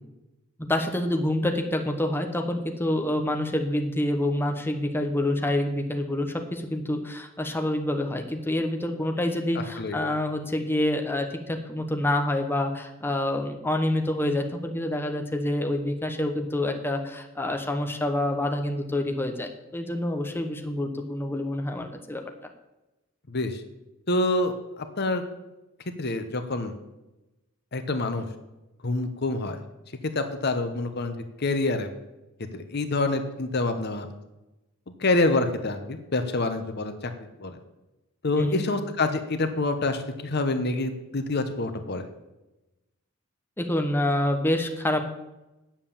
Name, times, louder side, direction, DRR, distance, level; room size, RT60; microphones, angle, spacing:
voice 1, 0.6-22.2 38.4-38.6 43.6-45.0, left 1 dB, 10° left, 3 dB, 0.9 m, -27 dB
voice 2, 9.5-10.0 23.3-23.6 24.1-25.2 26.0-26.7 27.7-28.3 28.8-29.6 30.1-31.9 32.5-34.1 35.0-37.6 38.2-42.0, left 2 dB, 50° left, 8 dB, 1.0 m, -27 dB
9.0 x 7.3 x 7.3 m, 0.99 s
head